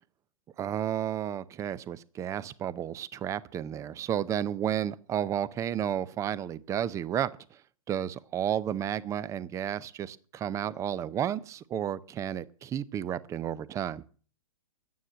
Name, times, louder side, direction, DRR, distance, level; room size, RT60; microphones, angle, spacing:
voice 1, 0.6-7.3 7.9-14.0, right 10 dB, 15° right, 18 dB, 0.5 m, -32 dB
11.5 x 9.3 x 7.5 m, 0.43 s
hypercardioid pair, 130°, 18 cm